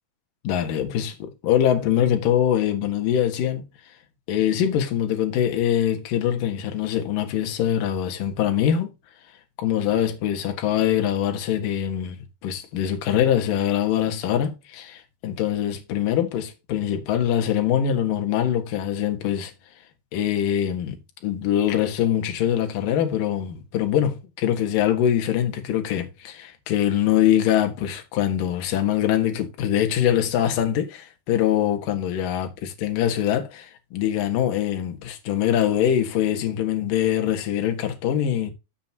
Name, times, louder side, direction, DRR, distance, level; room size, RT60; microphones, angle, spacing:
voice 1, 0.4-3.6 4.3-8.9 9.6-19.5 20.1-38.5, left 10 dB, 60° left, 2.8 m, -23 dB
13.5 x 5.3 x 2.8 m
omnidirectional pair, 4.8 m